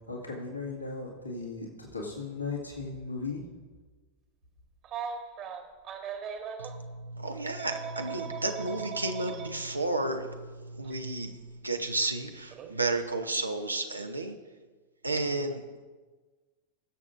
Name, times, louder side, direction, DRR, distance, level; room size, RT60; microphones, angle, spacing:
voice 1, 0.1-3.4, left 4 dB, 80° left, -2 dB, 2.0 m, -37 dB
Telephone, 4.8-6.7 7.6-9.5 10.8-11.0 12.5-12.7, right 7 dB, 35° right, 1.4 m, -38 dB
voice 2, 6.6-14.4 15.0-15.6, right 2 dB, 80° right, 5 dB, 0.8 m, -32 dB
21.0 x 7.4 x 2.6 m, 1.3 s
figure-of-eight pair, 90°, 0 cm